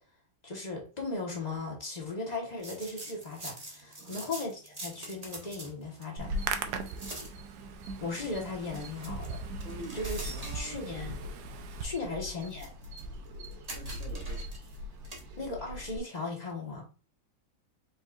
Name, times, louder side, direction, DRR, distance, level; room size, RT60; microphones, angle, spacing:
voice 1, 0.4-6.3 8.0-9.6 9.9-10.2 10.5-11.2 11.8-12.7 15.4-16.9, left 3 dB, 25° left, 1.2 m, -37 dB
sound 1, 2.6-15.5, right 2 dB, 25° right, 1.0 m, -47 dB
voice 2, 3.8-4.3 6.6-6.8 9.6-10.8 12.0-12.2 13.7-14.5, right 1 dB, 50° right, 1.4 m, -46 dB
Hands, 6.2-11.8, right 7 dB, 70° right, 1.1 m, -40 dB
sound 2, 6.2-16.0, left 1 dB, 90° right, 1.7 m, -41 dB
5.1 x 4.2 x 2.4 m
omnidirectional pair, 2.0 m